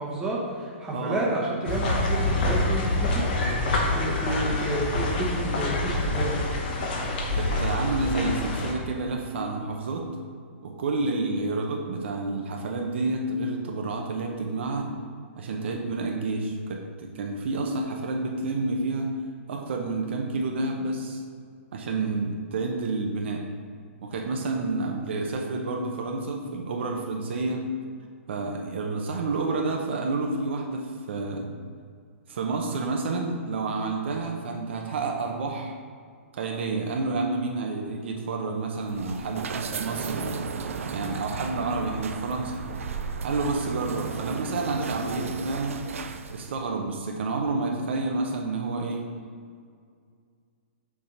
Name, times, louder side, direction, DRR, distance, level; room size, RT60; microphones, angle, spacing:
voice 1, 0.0-6.4, right 2 dB, 10° right, -5 dB, 1.1 m, -30 dB
voice 2, 0.9-1.3 7.3-10.1 10.6-14.9 15.4-19.1 19.5-21.2 21.7-23.4 24.0-27.6 28.3-31.5 32.3-35.7 36.3-40.3 40.9-42.6 43.2-45.8 46.3-49.0, right 3 dB, 55° right, 1 dB, 0.8 m, -29 dB
sound 1, 1.6-8.7, left 2 dB, 40° left, 1.0 m, -26 dB
sound 2, 38.7-46.6, right 5 dB, 85° right, 0.5 m, -34 dB
6.5 x 3.6 x 5.8 m, 2.2 s
hypercardioid pair, 165°, 7 cm